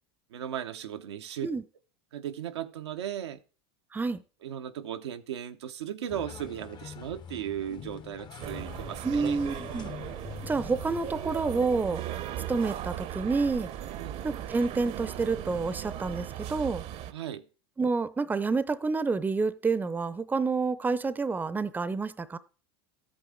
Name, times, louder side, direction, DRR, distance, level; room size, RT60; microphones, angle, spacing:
voice 1, 0.3-1.5 2.1-3.4 4.4-9.4 14.0-14.2 17.1-17.5, right 10 dB, 85° right, 0.7 m, -36 dB
voice 2, 3.9-4.2 9.0-9.9 10.4-12.0 12.5-13.7 14.2-16.8 17.8-22.4, right 4 dB, 15° right, 0.6 m, -28 dB
sound 1, 6.1-11.7, left 8 dB, 30° left, 0.7 m, -44 dB
sound 2, 8.4-17.1, right 11 dB, 50° right, 0.7 m, -38 dB
13.0 x 8.7 x 3.7 m
hypercardioid pair, 95°, 14 cm